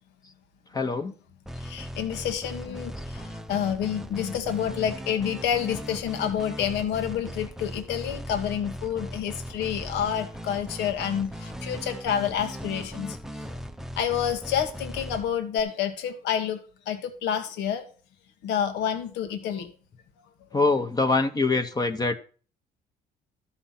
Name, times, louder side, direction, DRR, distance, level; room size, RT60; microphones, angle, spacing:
voice 1, 0.7-1.1 20.5-22.1, left 3 dB, 20° left, 7 dB, 1.0 m, -24 dB
sound 1, 1.5-15.6, equal, ahead, 0.6 m, -38 dB
voice 2, 1.6-13.2 13.5-13.6 14.0-16.6 16.9-17.8 18.4-19.7, left 9 dB, 85° left, 7 dB, 1.5 m, -29 dB
13.0 x 5.6 x 5.7 m, 0.39 s
cardioid pair, 110°, 17 cm